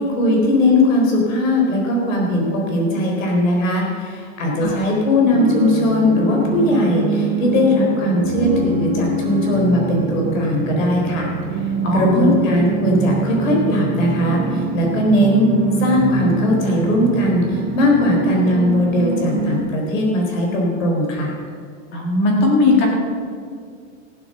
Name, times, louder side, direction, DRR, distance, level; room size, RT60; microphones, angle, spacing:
voice 1, 0.0-11.3 11.9-15.5 15.8-21.3, left 1 dB, 80° left, 0 dB, 4.4 m, -19 dB
sound 1, 5.3-19.6, right 4 dB, 15° right, 0.9 m, -24 dB
voice 2, 11.8-12.3 21.9-22.9, left 2 dB, 25° left, 0 dB, 1.9 m, -17 dB
15.5 x 7.9 x 6.7 m, 2.1 s
supercardioid pair, 175°, 38 cm